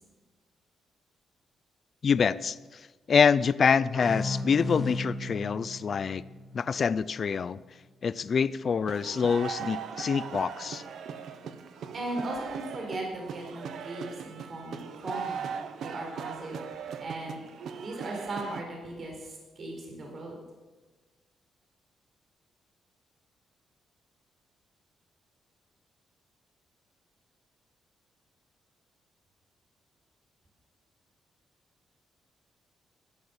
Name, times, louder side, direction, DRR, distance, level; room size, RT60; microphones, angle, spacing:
voice 1, 2.0-2.6 3.1-6.2 6.5-7.6 8.0-10.8, left 6 dB, 45° left, 18 dB, 0.5 m, -26 dB
sound 1, 3.9-7.4, left 1 dB, 10° right, 2.0 m, -36 dB
sound 2, 8.9-18.6, right 7 dB, 75° right, 1.2 m, -39 dB
voice 2, 11.9-15.5 15.8-17.4 17.8-20.3, right 2 dB, 45° right, 0 dB, 4.5 m, -38 dB
15.0 x 11.5 x 7.2 m, 1.3 s
cardioid pair, 105°, 0 cm